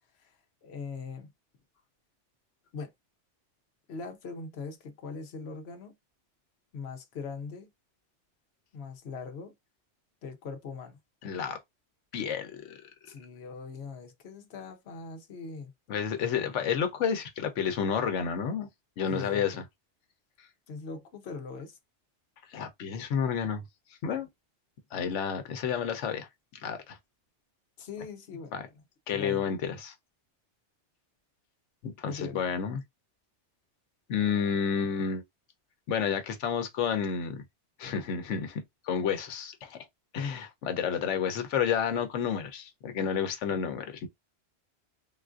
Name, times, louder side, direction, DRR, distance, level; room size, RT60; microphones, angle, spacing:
voice 1, 0.6-1.3 2.7-2.9 3.9-5.9 6.7-7.7 8.7-9.5 10.2-11.0 13.1-15.7 19.1-19.6 20.7-21.8 27.8-28.7 29.1-29.5 32.0-32.4, left 4 dB, 65° left, 0.9 m, -41 dB
voice 2, 11.2-11.6 12.1-12.8 15.9-18.7 19.0-19.5 22.5-23.6 24.0-24.3 24.9-27.0 28.5-28.6 29.1-29.9 31.8-32.8 34.1-35.2 35.9-37.4 37.8-39.8 40.1-44.1, left 7 dB, 90° left, 1.0 m, -30 dB
3.7 x 2.4 x 2.4 m
omnidirectional pair, 1.2 m